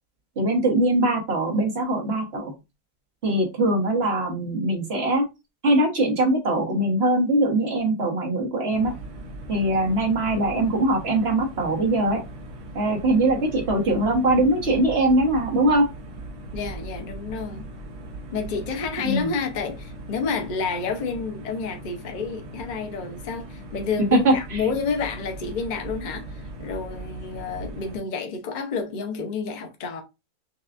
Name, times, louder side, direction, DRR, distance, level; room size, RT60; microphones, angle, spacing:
voice 1, 0.4-2.5 3.2-5.2 5.6-8.9 9.5-12.2 12.7-15.9 19.0-19.3 24.1-24.3, right 1 dB, 40° right, 1.3 m, -21 dB
sound 1, 8.7-28.0, right 1 dB, 75° right, 1.4 m, -39 dB
voice 2, 16.5-17.7 18.3-30.0, left 5 dB, 60° left, 0.4 m, -29 dB
5.8 x 2.3 x 2.5 m
omnidirectional pair, 1.8 m